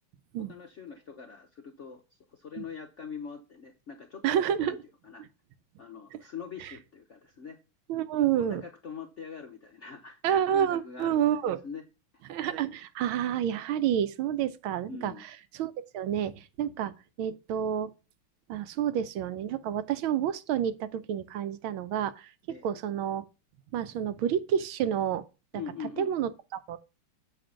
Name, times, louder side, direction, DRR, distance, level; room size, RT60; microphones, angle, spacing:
voice 1, 0.4-4.8 5.0-5.2 5.8-7.6 8.4-10.2 10.5-11.2 11.6-11.8 14.9-15.2 22.5-22.7 25.5-26.1, left 6 dB, 65° left, 0.7 m, -43 dB
voice 2, 4.2-4.8 6.1-6.2 6.6-6.7 7.9-8.6 10.2-11.6 12.3-15.1 15.5-17.9 18.5-22.3 22.6-23.3 23.7-25.2 26.0-26.8, right 9 dB, 75° right, 1.5 m, -29 dB
7.8 x 5.2 x 6.3 m
omnidirectional pair, 2.4 m